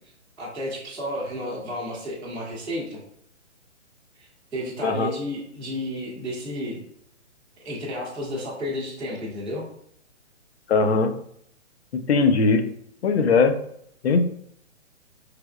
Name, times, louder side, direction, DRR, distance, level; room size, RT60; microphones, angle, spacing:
voice 1, 0.4-3.0 4.2-6.8 7.6-9.7, equal, 5° right, -13 dB, 0.4 m, -32 dB
voice 2, 10.7-11.1 12.1-12.6 13.0-13.5 14.0-14.2, left 4 dB, 65° left, 8 dB, 0.7 m, -19 dB
5.0 x 3.4 x 2.3 m, 0.69 s
hypercardioid pair, 140°, 35 cm